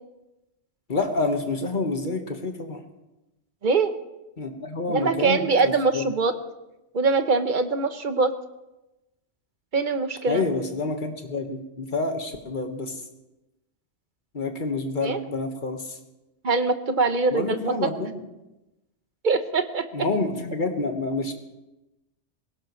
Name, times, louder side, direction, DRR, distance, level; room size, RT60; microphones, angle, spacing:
voice 1, 0.9-2.8 4.4-6.1 10.3-12.9 14.3-15.9 17.3-18.2 19.9-21.3, left 3 dB, 45° left, 4 dB, 1.6 m, -28 dB
voice 2, 4.9-6.3 6.9-8.3 9.7-10.4 15.0-15.2 16.4-17.9 19.2-20.1, right 4 dB, 45° right, 9 dB, 1.0 m, -23 dB
21.0 x 17.5 x 3.2 m, 0.99 s
omnidirectional pair, 1.2 m